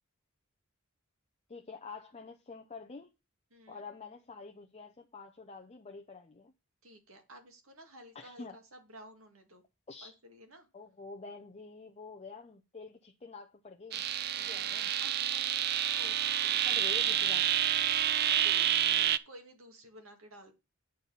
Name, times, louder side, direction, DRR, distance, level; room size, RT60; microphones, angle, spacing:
voice 1, 1.5-3.1 3.7-6.5 8.1-8.6 9.9-10.1 10.7-14.0 14.5-14.9 16.6-17.5, left 4 dB, 30° left, 0.7 m, -47 dB
voice 2, 3.5-3.8 6.8-9.6 10.0-10.7 14.4-14.7 15.0-16.8 18.3-20.5, right 1 dB, 75° right, 2.1 m, -54 dB
sound 1, 13.9-19.2, right 10 dB, 50° right, 0.4 m, -29 dB
8.8 x 4.1 x 6.9 m
head